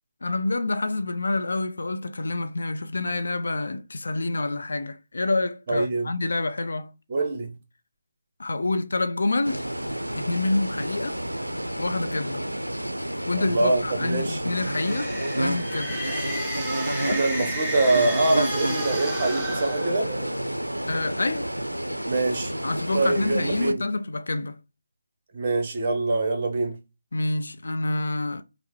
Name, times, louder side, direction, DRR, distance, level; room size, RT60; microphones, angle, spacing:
voice 1, 0.2-6.9 8.4-9.6 10.1-11.2 11.8-12.4 13.3-16.0 20.9-21.4 22.6-24.6 27.1-28.4, left 2 dB, 60° left, 0.5 m, -27 dB
voice 2, 5.7-6.1 7.1-7.5 13.3-14.4 17.0-20.1 22.0-22.5 22.9-23.8 25.3-26.8, right 2 dB, 35° right, 0.9 m, -24 dB
sound 1, 9.4-23.7, right 1 dB, 90° right, 0.4 m, -30 dB
sound 2, 14.4-20.5, right 1 dB, 5° left, 1.3 m, -34 dB
5.5 x 2.1 x 3.0 m
figure-of-eight pair, 150°, 0 cm